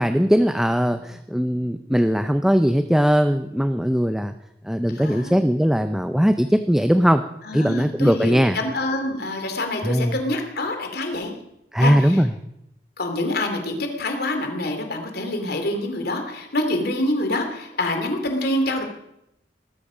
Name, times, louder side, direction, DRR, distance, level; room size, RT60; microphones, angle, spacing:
voice 1, 0.0-4.3 4.6-7.2 7.5-8.6 9.8-10.1 11.7-12.3, equal, 5° right, 8 dB, 0.6 m, -19 dB
voice 2, 4.9-5.4 7.4-11.3 11.8-12.3 13.0-18.8, left 1 dB, 60° left, 5 dB, 2.8 m, -26 dB
19.5 x 14.0 x 5.1 m, 0.81 s
head